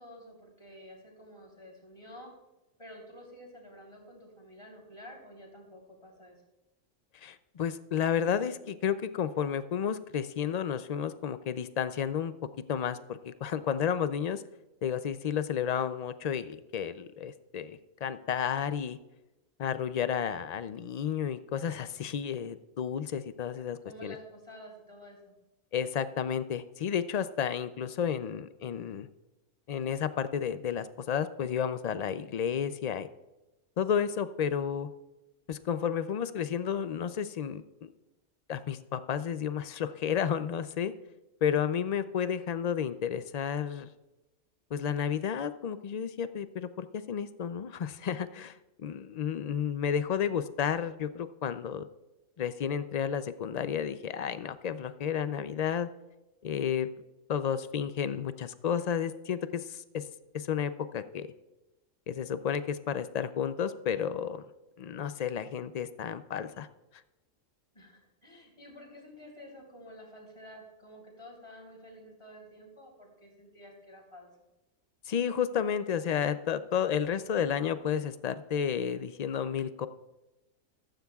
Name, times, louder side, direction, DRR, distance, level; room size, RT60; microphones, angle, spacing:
voice 1, 0.0-2.3 2.8-6.4 23.8-25.3 67.7-74.3, equal, 25° left, -1 dB, 3.6 m, -50 dB
voice 2, 7.1-12.3 12.7-14.4 14.8-19.0 19.6-24.2 25.7-29.1 29.7-33.1 33.8-34.9 35.5-37.9 38.5-40.9 41.4-43.9 44.7-51.9 52.4-55.9 56.4-56.9 57.3-60.1 60.3-61.3 62.1-64.5 64.8-66.7 75.1-79.9, left 8 dB, 80° left, 12 dB, 0.3 m, -32 dB
14.5 x 14.0 x 2.4 m, 1.0 s
omnidirectional pair, 1.3 m